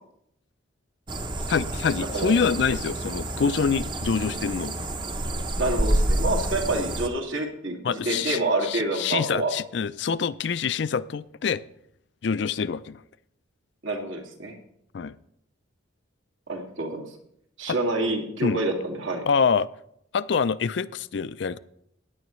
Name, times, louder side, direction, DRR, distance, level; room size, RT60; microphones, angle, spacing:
sound 1, 1.1-7.1, right 1 dB, 25° right, 0.7 m, -28 dB
voice 1, 1.5-4.8 7.8-11.6 12.2-13.0 14.9-15.2 17.7-17.8 18.4-18.6 19.3-19.7 20.1-21.6, left 6 dB, 60° left, 16 dB, 0.4 m, -26 dB
voice 2, 5.6-9.5 13.8-14.6 16.5-17.1 17.6-19.2, right 2 dB, 80° right, 2 dB, 2.2 m, -27 dB
16.0 x 9.9 x 3.1 m, 0.73 s
head